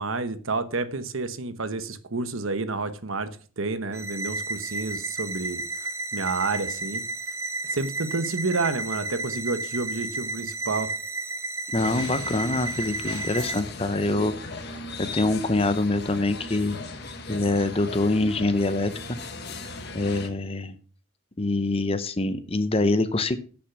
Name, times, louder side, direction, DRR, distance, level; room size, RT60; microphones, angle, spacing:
voice 1, 0.0-3.3 3.6-5.6 6.1-7.0 7.6-10.9, right 3 dB, 75° right, 12 dB, 1.0 m, -29 dB
sound 1, 3.9-13.6, right 3 dB, 15° right, 1.0 m, -32 dB
voice 2, 11.7-14.3 15.0-16.8 17.3-19.2 19.9-20.8 21.4-23.4, left 2 dB, 25° left, 12 dB, 0.7 m, -25 dB
sound 2, 11.8-20.3, left 3 dB, 50° left, 1.3 m, -38 dB
10.0 x 6.1 x 5.9 m, 0.41 s
head